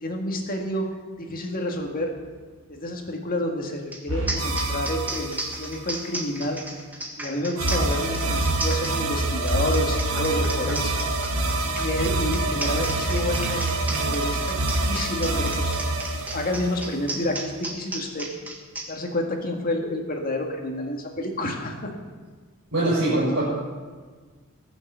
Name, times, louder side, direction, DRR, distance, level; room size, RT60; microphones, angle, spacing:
voice 1, 0.0-0.9 1.2-2.1 2.7-6.6 7.2-11.0 11.7-15.7 16.1-18.3 18.9-21.9, left 1 dB, 40° left, 2 dB, 2.0 m, -29 dB
sound 1, 3.9-4.0 4.3-18.9, right 1 dB, 10° right, 1.7 m, -34 dB
sound 2, 4.1-5.9 7.6-17.3, right 2 dB, 75° right, 1.7 m, -26 dB
voice 2, 22.7-23.4, right 1 dB, 60° right, -8 dB, 5.5 m, -22 dB
20.5 x 7.2 x 6.9 m, 1.4 s
head